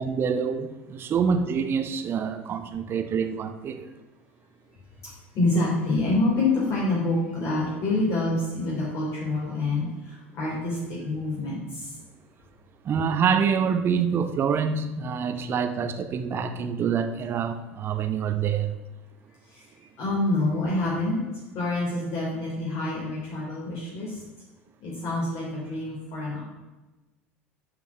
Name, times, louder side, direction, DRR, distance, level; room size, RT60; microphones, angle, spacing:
voice 1, 0.0-3.9 12.8-18.7, right 6 dB, 30° right, 0.8 m, -26 dB
voice 2, 5.0-12.0 19.5-19.7 20.0-21.2 21.5-24.2 24.8-26.4, left 2 dB, 40° left, 3.5 m, -27 dB
12.0 x 5.1 x 6.2 m
figure-of-eight pair, 70°, 7 cm